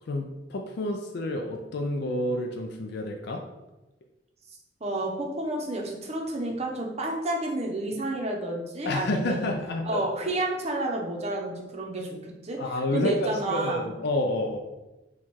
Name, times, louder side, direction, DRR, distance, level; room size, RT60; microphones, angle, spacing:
voice 1, 0.1-3.4 8.8-10.0 12.6-14.6, left 1 dB, 65° left, 2 dB, 0.4 m, -29 dB
voice 2, 4.8-9.5 9.8-13.8, right 1 dB, 35° right, 0 dB, 0.7 m, -30 dB
4.5 x 2.3 x 4.3 m, 1.0 s
head